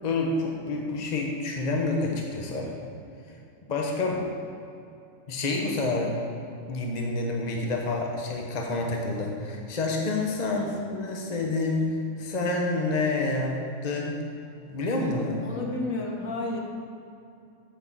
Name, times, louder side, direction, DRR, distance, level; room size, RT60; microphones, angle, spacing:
voice 1, 0.0-2.7 3.7-4.2 5.3-6.2 6.7-13.6 13.8-14.2 14.7-15.4, left 2 dB, 35° left, 0 dB, 1.1 m, -28 dB
voice 2, 10.4-10.8 15.4-16.6, left 2 dB, 75° left, -2 dB, 1.9 m, -32 dB
7.3 x 6.2 x 7.5 m, 2.5 s
omnidirectional pair, 1.4 m